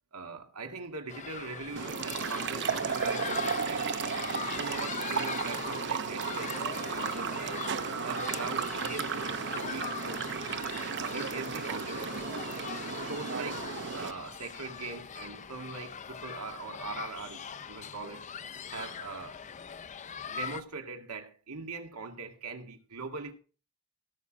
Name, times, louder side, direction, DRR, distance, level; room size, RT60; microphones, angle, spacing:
voice 1, 0.1-3.9 4.5-7.7 8.0-10.4 11.0-12.2 13.0-18.3 18.7-19.4 20.3-23.3, right 4 dB, 90° right, 2.1 m, -41 dB
sound 1, 1.1-20.6, left 7 dB, 35° left, 0.5 m, -41 dB
sound 2, 1.8-14.1, right 6 dB, 55° right, 0.8 m, -34 dB
17.5 x 6.3 x 5.1 m
head